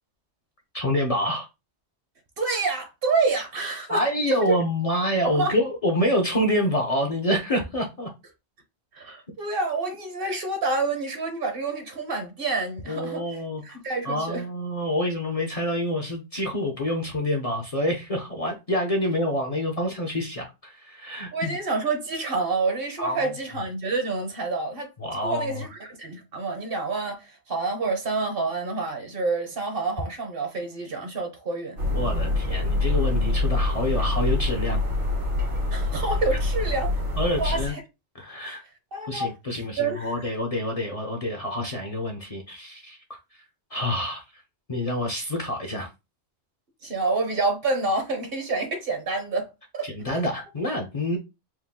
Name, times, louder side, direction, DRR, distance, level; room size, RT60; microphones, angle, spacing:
voice 1, 0.7-1.5 3.9-8.1 12.9-13.8 14.0-21.5 23.0-23.2 25.0-25.7 31.9-34.8 37.2-37.7 38.1-38.6 39.1-43.2 43.7-44.4 44.7-45.9 49.8-51.2, left 1 dB, 40° left, 0.7 m, -27 dB
voice 2, 2.4-4.6 5.2-5.5 8.9-14.4 21.3-24.9 25.2-31.8 35.7-37.0 37.4-37.8 38.9-39.3 39.8-40.3 46.8-49.5 49.7-49.9, right 3 dB, 55° right, 1.1 m, -28 dB
sound 1, 31.8-37.7, left 2 dB, 75° right, 2.0 m, -25 dB
4.6 x 2.1 x 3.5 m
omnidirectional pair, 1.2 m